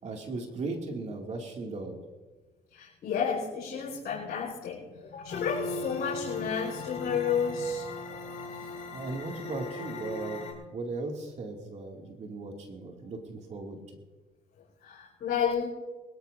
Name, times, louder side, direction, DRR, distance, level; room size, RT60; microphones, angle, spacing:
voice 1, 0.0-2.0 8.6-14.0, right 3 dB, 40° right, 1 dB, 2.4 m, -37 dB
voice 2, 2.7-7.8 14.8-15.7, left 6 dB, 65° left, -4 dB, 4.9 m, -31 dB
sound 1, 5.3-10.5, left 3 dB, 40° left, 4.0 m, -38 dB
23.5 x 13.5 x 2.7 m, 1.2 s
cardioid pair, 110°, 17 cm